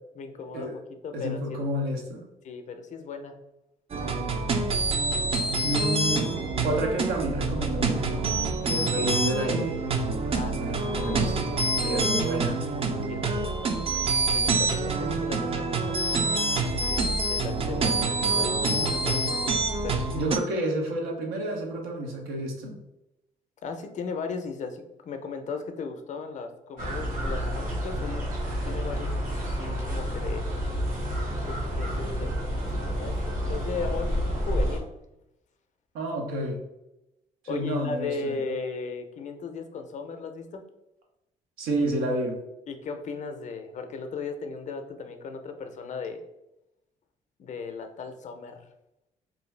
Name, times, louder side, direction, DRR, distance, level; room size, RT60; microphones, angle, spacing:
voice 1, 0.2-0.7 1.0-1.6 2.4-3.4 10.3-10.7 11.8-12.0 13.1-16.0 16.6-20.2 23.6-28.3 28.6-29.1 29.6-30.5 31.5-32.4 32.6-34.8 37.5-40.7 42.7-46.2 47.4-48.6, left 4 dB, 50° left, 7 dB, 0.5 m, -37 dB
voice 2, 1.1-2.2 5.6-6.3 6.6-8.3 8.6-9.8 10.5-12.6 20.1-22.8 35.9-36.6 37.4-38.4 41.6-42.4, right 1 dB, 85° right, 1 dB, 0.7 m, -30 dB
sound 1, 3.9-20.4, right 3 dB, 40° right, 0.4 m, -26 dB
sound 2, 26.8-34.8, equal, 60° right, 1.1 m, -29 dB
2.6 x 2.3 x 3.2 m, 0.89 s
supercardioid pair, 70°, 16 cm